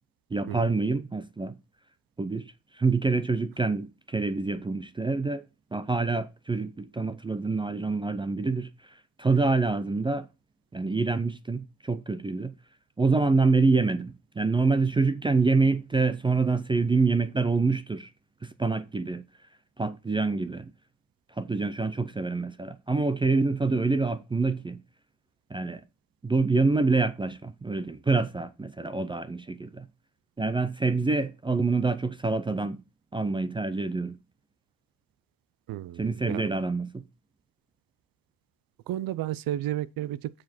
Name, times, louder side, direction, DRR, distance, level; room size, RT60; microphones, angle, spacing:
voice 1, 0.3-1.5 2.2-2.5 2.7-5.4 5.7-10.3 10.7-12.5 13.0-18.1 18.4-19.2 19.8-20.7 21.4-24.8 25.5-25.8 26.2-29.9 30.4-32.8 33.1-34.2 36.0-37.0, right 3 dB, 15° right, 0.4 m, -26 dB
voice 2, 35.7-36.5 38.9-40.3, right 13 dB, 60° right, 0.6 m, -32 dB
7.4 x 4.9 x 5.9 m
cardioid pair, 130°, 39 cm